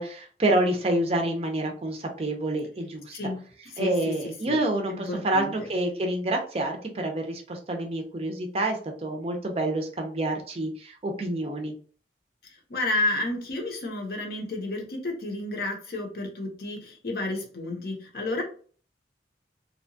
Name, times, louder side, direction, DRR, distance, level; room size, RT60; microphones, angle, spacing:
voice 1, 0.0-3.2 3.8-11.7, right 1 dB, 30° right, 2 dB, 0.5 m, -28 dB
voice 2, 3.8-4.6 4.9-5.5 12.7-18.4, left 2 dB, 55° left, 2 dB, 0.7 m, -31 dB
2.7 x 2.2 x 2.6 m, 0.43 s
head